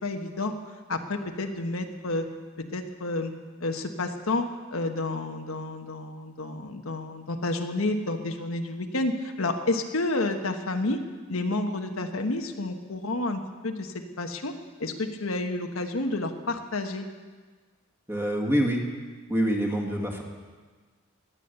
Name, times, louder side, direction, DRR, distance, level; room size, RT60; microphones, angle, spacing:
voice 1, 0.0-0.6 0.9-2.3 2.6-3.3 3.6-4.4 4.7-11.0 11.3-14.5 14.8-17.1, left 2 dB, 80° left, 5 dB, 1.3 m, -30 dB
voice 2, 18.1-18.8 19.3-20.2, equal, 10° right, 1 dB, 2.1 m, -25 dB
17.5 x 10.5 x 6.8 m, 1.4 s
head